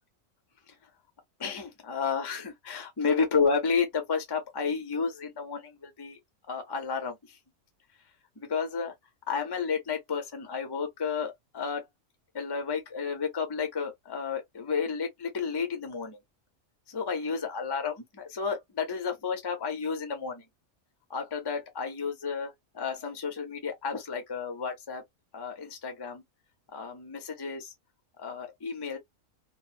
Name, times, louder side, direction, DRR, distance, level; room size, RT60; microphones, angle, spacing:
voice 1, 1.4-6.2 6.5-7.2 8.4-8.9 9.3-11.8 12.3-16.2 16.9-20.4 21.1-25.0 25.3-26.2 26.7-27.7 28.2-29.0, left 5 dB, 25° left, 0.5 m, -31 dB
3.1 x 2.0 x 2.5 m
omnidirectional pair, 1.4 m